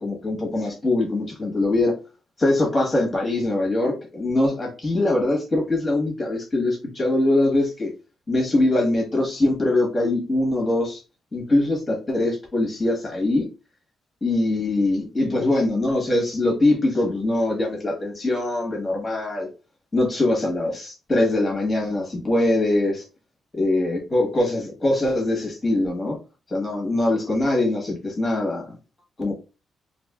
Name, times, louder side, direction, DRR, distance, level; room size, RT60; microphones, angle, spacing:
voice 1, 0.0-1.9 2.4-7.9 8.3-11.0 11.3-13.5 14.2-19.5 19.9-23.0 23.5-26.2 26.5-28.7 29.2-29.3, left 2 dB, 20° left, 0 dB, 1.3 m, -22 dB
4.3 x 2.6 x 2.3 m, 0.30 s
cardioid pair, 155°, 0 cm